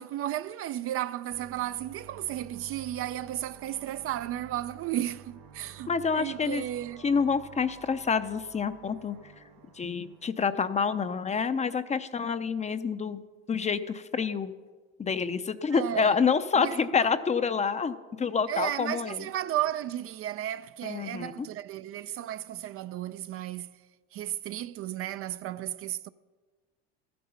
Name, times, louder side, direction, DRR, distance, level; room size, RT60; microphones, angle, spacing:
voice 1, 0.0-7.0 15.7-16.2 16.6-16.8 18.5-23.8 24.1-26.1, right 12 dB, 45° right, 0.4 m, -34 dB
sound 1, 1.3-10.3, right 7 dB, 75° right, 2.5 m, -51 dB
voice 2, 5.9-6.6 7.0-9.3 9.7-13.2 13.5-14.5 15.0-19.3 20.8-21.5, left 5 dB, 20° left, 0.5 m, -28 dB
14.5 x 9.5 x 5.6 m
supercardioid pair, 95°, 32 cm